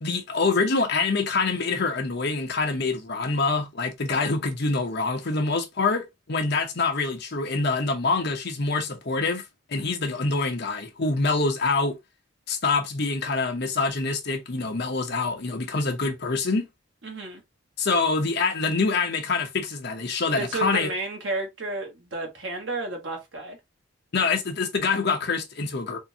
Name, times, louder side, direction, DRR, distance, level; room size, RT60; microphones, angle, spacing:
voice 1, 0.0-9.4 9.7-12.0 12.5-16.7 17.8-20.9 24.1-26.0, left 3 dB, 50° left, 0.8 m, -25 dB
voice 2, 17.0-17.4 20.3-23.6, right 2 dB, 60° right, 1.3 m, -32 dB
3.6 x 2.6 x 2.8 m
head